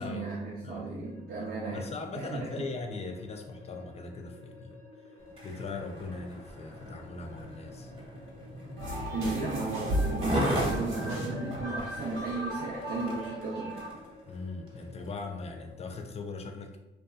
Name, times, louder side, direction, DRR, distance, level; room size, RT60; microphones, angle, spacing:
voice 1, 0.0-1.8 2.1-2.5 9.1-13.8, right 3 dB, 50° right, -5 dB, 0.5 m, -35 dB
sound 1, 1.0-16.0, left 2 dB, 80° left, 0.7 m, -53 dB
voice 2, 1.7-4.8 5.4-7.9 14.2-16.8, left 4 dB, 30° left, 4 dB, 0.4 m, -39 dB
Skateboard, 5.2-14.1 14.7-14.8, equal, 30° right, 0.9 m, -37 dB
sound 2, 8.8-13.9, equal, 85° right, 0.8 m, -35 dB
2.7 x 2.3 x 2.3 m, 0.96 s
cardioid pair, 90°, 20 cm